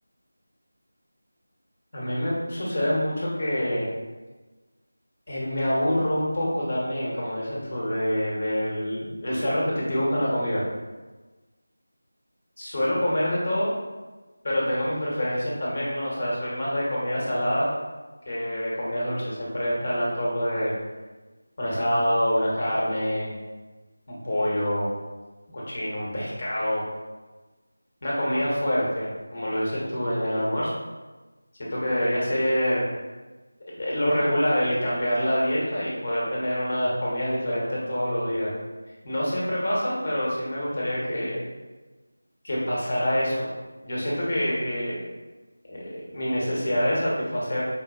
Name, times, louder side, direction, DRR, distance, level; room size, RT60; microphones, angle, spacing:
voice 1, 1.9-3.8 5.3-10.6 12.6-13.7 14.4-17.7 18.2-20.7 21.6-23.3 24.1-24.9 25.5-26.8 28.0-30.7 31.6-32.8 33.8-38.5 39.0-41.4 42.4-43.4 43.8-45.0 45.6-47.6, equal, 40° left, -6 dB, 1.0 m, -26 dB
4.3 x 2.1 x 2.4 m, 1.2 s
figure-of-eight pair, 170°, 0 cm